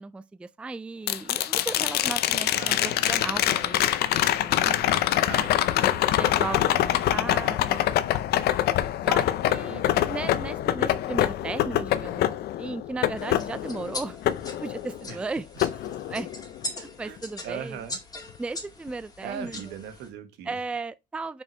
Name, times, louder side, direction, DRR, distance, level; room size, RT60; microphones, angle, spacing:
voice 1, 0.0-4.7 6.2-7.8 9.0-9.8 10.1-15.5 16.1-16.3 16.7-17.8 18.4-19.7 20.5-21.4, right 3 dB, 5° right, 0.3 m, -36 dB
sound 1, 1.1-15.2 15.6-16.6 18.9-19.0, left 12 dB, 70° left, 0.6 m, -25 dB
voice 2, 2.5-3.4 4.6-6.1 6.8-7.0 9.7-10.1 15.1-15.2 17.0-17.2 17.4-18.0 19.2-20.6, right 7 dB, 85° right, 1.4 m, -40 dB
sound 2, 13.2-20.1, left 2 dB, 20° left, 2.2 m, -41 dB
5.3 x 4.6 x 4.5 m
cardioid pair, 110°, 17 cm